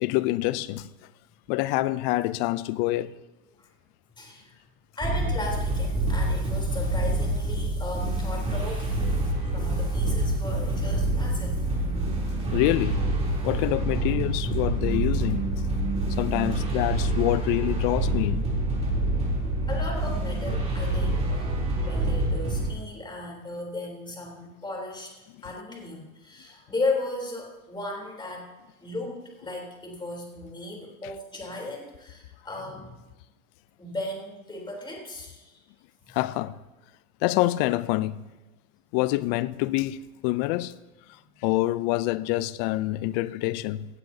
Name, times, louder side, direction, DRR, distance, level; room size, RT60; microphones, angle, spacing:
voice 1, 0.0-0.9 1.5-3.1 12.5-13.0 13.4-15.4 16.2-18.5 36.1-36.5 37.2-38.2 38.9-40.0 40.2-40.7 41.4-43.9, left 17 dB, 45° left, 0.6 m, -26 dB
voice 2, 4.2-4.6 5.0-11.7 19.7-25.1 25.4-28.5 28.8-32.9 33.8-35.6, left 2 dB, 10° left, 3.7 m, -36 dB
sound 1, 5.0-22.7, right 1 dB, 15° right, 3.5 m, -26 dB
18.0 x 12.0 x 2.8 m
hypercardioid pair, 110°, 43 cm